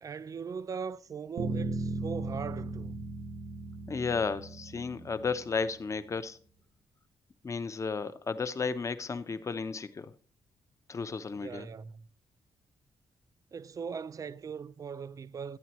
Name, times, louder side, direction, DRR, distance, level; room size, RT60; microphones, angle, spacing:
voice 1, 0.0-3.1 11.3-12.1 13.5-15.6, right 6 dB, 30° right, 0.4 m, -40 dB
sound 1, 1.4-5.7, right 3 dB, 75° right, 1.1 m, -37 dB
voice 2, 3.9-6.4 7.4-10.1 10.9-11.7, left 5 dB, 30° left, 0.6 m, -33 dB
12.5 x 9.2 x 2.9 m
wide cardioid pair, 135°, 11 cm